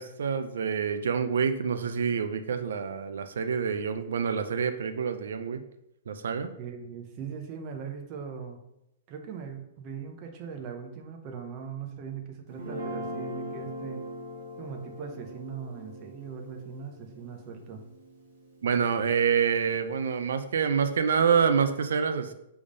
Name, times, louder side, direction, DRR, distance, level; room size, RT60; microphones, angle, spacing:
voice 1, 0.0-5.6 6.1-6.5 18.6-22.3, right 6 dB, 85° right, 9 dB, 0.5 m, -27 dB
voice 2, 6.6-8.6 9.1-14.0 14.6-17.8, right 6 dB, 25° right, 3 dB, 0.7 m, -40 dB
Guitar, 12.5-18.8, equal, 45° right, 1.7 m, -40 dB
7.0 x 3.5 x 5.2 m, 0.84 s
hypercardioid pair, 175°, 0 cm